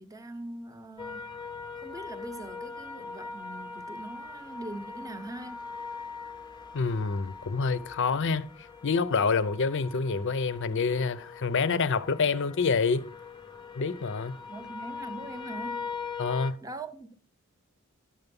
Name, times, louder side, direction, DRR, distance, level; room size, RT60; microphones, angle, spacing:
voice 1, 0.0-1.4 1.8-5.6 14.5-15.9 16.6-17.1, right 2 dB, 15° right, 0.8 m, -42 dB
sound 1, 1.0-16.5, left 5 dB, 20° left, 0.6 m, -42 dB
voice 2, 6.7-8.5 8.8-13.0 13.7-14.4 16.2-16.6, left 4 dB, 60° left, 0.6 m, -27 dB
11.5 x 6.9 x 5.3 m
head